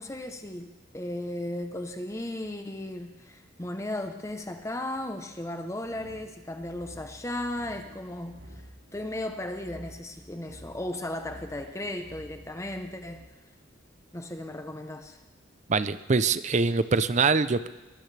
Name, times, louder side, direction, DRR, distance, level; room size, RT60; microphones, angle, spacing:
voice 1, 0.0-8.6 8.9-13.2 14.1-15.2, left 1 dB, 15° left, 6 dB, 0.8 m, -36 dB
sound 1, 5.8-13.3, equal, 65° right, 2.1 m, -50 dB
voice 2, 15.7-17.7, right 4 dB, 35° right, 14 dB, 0.5 m, -24 dB
22.5 x 15.5 x 3.3 m, 1.1 s
head